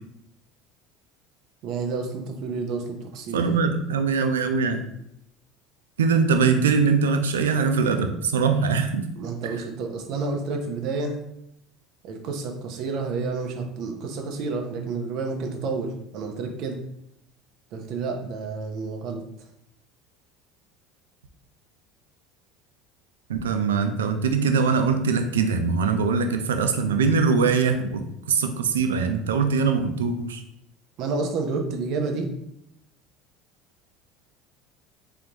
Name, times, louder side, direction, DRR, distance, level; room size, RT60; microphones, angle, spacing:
voice 1, 1.6-3.4 9.2-11.2 12.0-16.8 17.7-19.2 31.0-32.3, right 4 dB, 60° right, 3 dB, 0.8 m, -30 dB
voice 2, 3.3-4.8 6.0-9.1 9.5-9.6 23.3-28.0 28.3-30.4, right 5 dB, 90° right, 6 dB, 0.4 m, -22 dB
3.7 x 3.3 x 2.9 m, 0.77 s
hypercardioid pair, 75°, 0 cm